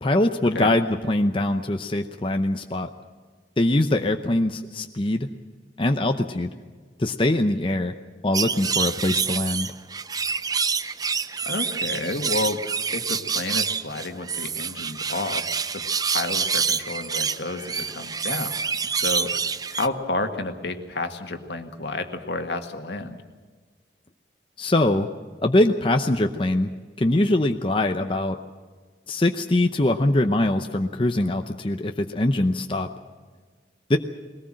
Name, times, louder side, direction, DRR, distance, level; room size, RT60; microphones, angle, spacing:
voice 1, 0.0-2.9 3.6-5.3 5.8-6.5 7.0-7.9 8.2-9.7 24.6-25.1 25.4-26.7 27.0-28.4 29.1-32.9 33.9-34.0, left 1 dB, 30° left, 5 dB, 0.7 m, -22 dB
sound 1, 8.3-19.9, right 6 dB, 20° right, 0.5 m, -27 dB
voice 2, 11.5-12.6 12.9-15.4 15.7-15.8 16.1-18.6 18.9-19.3 19.7-23.2, left 2 dB, 75° left, 6 dB, 1.8 m, -30 dB
21.0 x 18.5 x 7.6 m, 1.5 s
head